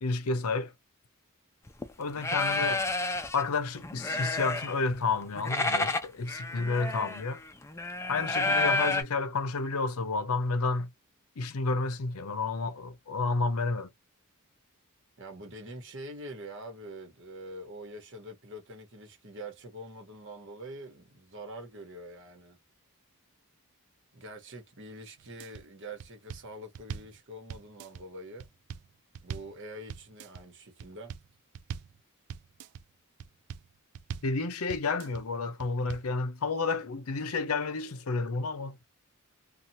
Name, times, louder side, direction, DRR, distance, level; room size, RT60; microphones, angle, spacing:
voice 1, 0.0-0.7 2.0-2.8 3.3-7.4 8.1-10.9 11.4-13.9 34.2-38.8, left 3 dB, 70° left, 0.6 m, -30 dB
sound 1, 1.7-1.9 2.2-3.4 3.8-4.9 5.2-9.0, left 2 dB, 10° left, 0.5 m, -30 dB
voice 2, 15.2-22.6 24.1-28.5 29.2-31.1, right 1 dB, 55° right, 1.1 m, -45 dB
sound 2, 25.2-25.6 26.0-27.2 27.5-28.0 28.4-29.6 29.9-30.4 30.8-31.3 31.5-32.0 32.3-32.8 33.2-33.7 33.9-34.4 34.7-35.2 35.6-36.1, right 7 dB, 80° right, 0.4 m, -41 dB
2.8 x 2.3 x 2.6 m
head